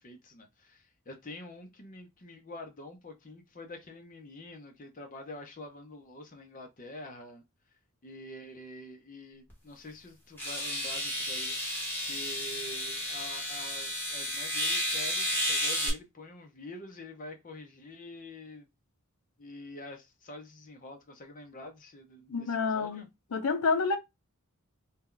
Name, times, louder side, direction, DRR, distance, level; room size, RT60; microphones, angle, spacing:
voice 1, 0.0-7.4 8.0-11.8 12.0-18.7 19.4-23.1, left 1 dB, 35° left, 0.7 m, -46 dB
sound 1, 9.5-9.6 10.4-15.9, equal, 10° left, 1.2 m, -32 dB
voice 2, 22.3-23.0 23.3-24.0, left 4 dB, 80° left, 0.6 m, -28 dB
2.8 x 2.3 x 3.7 m
head